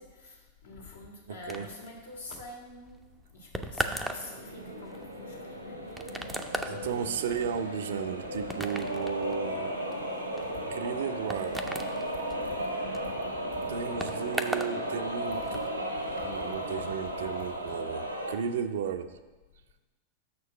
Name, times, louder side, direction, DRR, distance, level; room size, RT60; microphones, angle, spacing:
voice 1, 0.0-6.5 10.7-10.8 12.4-12.5 13.6-13.7 16.2-16.3, left 2 dB, 70° left, -2 dB, 1.6 m, -47 dB
voice 2, 1.3-1.7 6.7-9.8 10.7-11.7 13.7-15.6 16.0-19.2, right 7 dB, 60° right, 10 dB, 0.4 m, -34 dB
sound 1, 1.5-14.8 15.0-15.7, right 1 dB, 5° right, 0.5 m, -38 dB
sound 2, 4.1-18.3, right 1 dB, 90° right, 0.9 m, -35 dB
6.4 x 4.4 x 6.6 m, 1.2 s
figure-of-eight pair, 90°, 0 cm